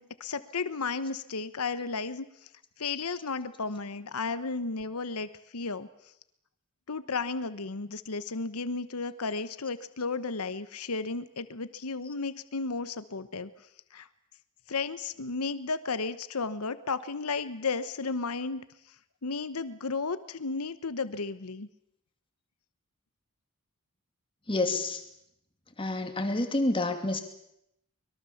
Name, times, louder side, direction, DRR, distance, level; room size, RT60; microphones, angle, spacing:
voice 1, 0.0-2.3 2.8-5.9 6.9-13.5 13.9-14.1 14.7-18.6 19.2-21.7, left 4 dB, 80° left, 13 dB, 1.1 m, -33 dB
voice 2, 24.5-25.0 25.8-27.2, left 2 dB, 25° left, 6 dB, 2.6 m, -28 dB
24.0 x 22.0 x 7.2 m, 0.78 s
head